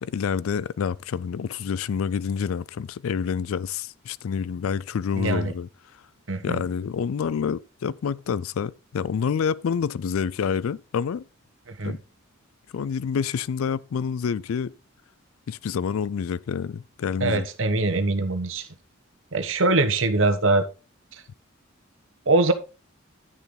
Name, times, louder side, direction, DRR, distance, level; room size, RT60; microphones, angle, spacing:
voice 1, 0.0-5.7 6.4-11.2 11.8-12.0 12.7-14.8 15.5-17.5, left 6 dB, 80° left, 0.4 m, -28 dB
voice 2, 5.2-5.5 6.3-6.6 11.7-12.0 17.2-18.7 19.3-20.7 21.1-21.2 22.3-22.5, right 2 dB, 65° right, 1.2 m, -22 dB
10.5 x 6.9 x 3.8 m
head